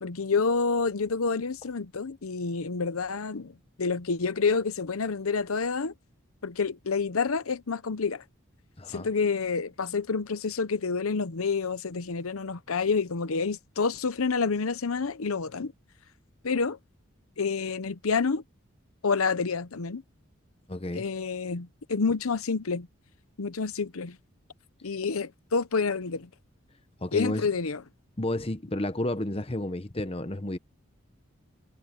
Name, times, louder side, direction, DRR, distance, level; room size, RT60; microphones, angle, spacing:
voice 1, 0.0-5.9 6.4-8.2 8.9-15.7 16.4-16.8 17.4-18.4 19.0-20.0 20.9-22.9 23.4-24.2 24.8-26.3 27.1-27.8, left 4 dB, 90° left, 0.8 m, -28 dB
voice 2, 8.8-9.1 20.7-21.1 27.0-27.5 28.2-30.6, left 1 dB, 25° left, 0.9 m, -31 dB
head